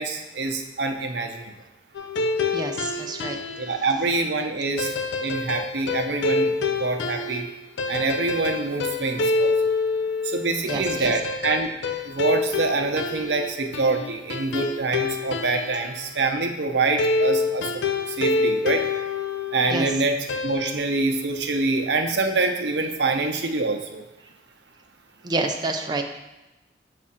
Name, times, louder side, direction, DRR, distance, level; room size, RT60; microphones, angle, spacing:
voice 1, 0.0-1.5 3.6-4.9 5.2-6.5 6.8-7.5 7.9-9.5 10.2-11.7 12.0-18.8 19.5-20.2 20.4-24.0, right 3 dB, 70° right, 4 dB, 0.6 m, -25 dB
sound 1, 1.9-3.8 4.8-15.9 17.0-19.9 20.3-20.8, left 3 dB, 85° left, 0.4 m, -27 dB
voice 2, 2.5-3.4 10.5-11.2 19.7-19.9 25.2-26.0, right 2 dB, 25° right, 3 dB, 0.4 m, -28 dB
7.4 x 2.5 x 5.5 m, 1.0 s
head